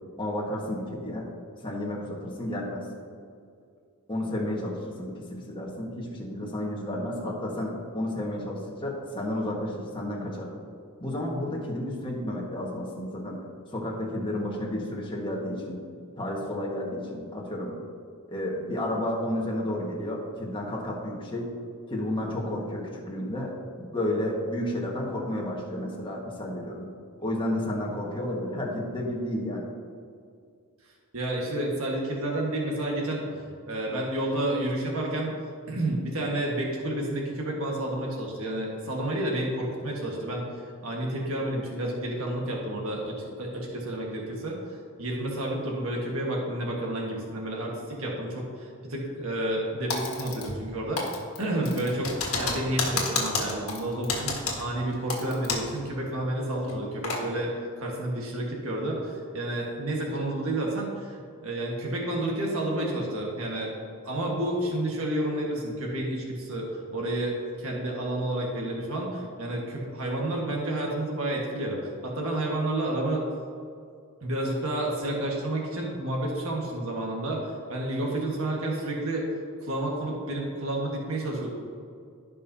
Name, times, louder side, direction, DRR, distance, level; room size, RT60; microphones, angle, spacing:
voice 1, 0.2-1.3 1.6-2.8 4.1-10.5 11.0-13.4 13.7-15.8 16.2-17.8 18.3-21.5 21.9-26.9 27.2-29.7, left 1 dB, 20° left, -3 dB, 1.5 m, -31 dB
voice 2, 31.1-33.3 33.7-35.3 35.7-40.4 40.8-51.0 51.4-57.5 57.8-63.7 64.0-73.2 74.2-79.3 79.6-81.5, right 1 dB, 65° right, -2 dB, 1.6 m, -30 dB
Typing, 49.9-50.7 51.0-55.8 56.1-56.2 56.6-57.2, left 4 dB, 70° left, 1.7 m, -30 dB
16.0 x 5.4 x 2.8 m, 2.3 s
head